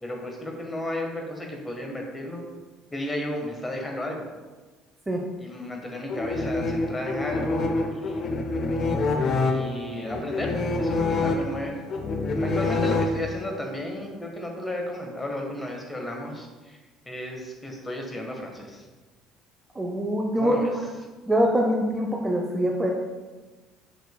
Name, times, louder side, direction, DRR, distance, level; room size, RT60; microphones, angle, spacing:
voice 1, 0.0-2.5 2.9-4.3 5.4-8.2 9.4-10.5 10.8-11.7 12.4-16.8 17.0-18.8 20.3-20.7, left 1 dB, 15° left, 1 dB, 1.4 m, -33 dB
sound 1, 6.1-13.6, left 3 dB, 45° left, 0.7 m, -26 dB
voice 2, 19.7-20.6 21.3-22.9, equal, 15° right, 0 dB, 0.8 m, -24 dB
6.6 x 6.3 x 2.3 m, 1.3 s
figure-of-eight pair, 55°, 0 cm